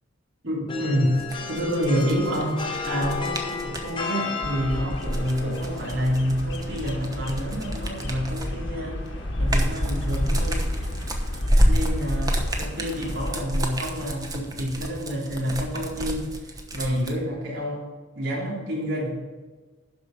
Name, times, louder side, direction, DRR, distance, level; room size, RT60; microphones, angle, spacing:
voice 1, 0.4-9.0 9.4-10.6 11.6-17.8 18.1-19.2, equal, 75° right, -5 dB, 3.2 m, -28 dB
sound 1, 0.7-11.0, left 5 dB, 25° left, 0.9 m, -36 dB
sound 2, 1.1-3.9 4.9-8.6 9.1-17.1, equal, 20° right, 1.0 m, -28 dB
Bird vocalization bird call bird song, 4.4-13.4, left 1 dB, 70° left, 1.4 m, -32 dB
12.0 x 4.9 x 5.9 m, 1.3 s
head